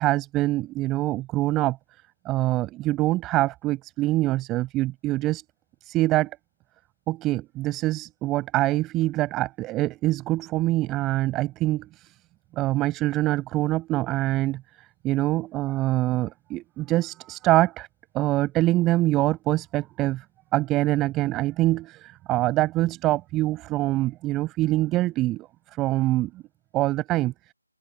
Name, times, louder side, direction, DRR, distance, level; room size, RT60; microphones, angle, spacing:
voice 1, 0.0-1.8 2.2-5.4 5.8-6.3 7.1-12.1 12.5-14.6 15.0-17.9 18.1-20.2 20.5-25.5 25.8-26.3 26.7-27.3, right 17 dB, 10° right, 6.0 m, -24 dB
open air
figure-of-eight pair, 155°, 0 cm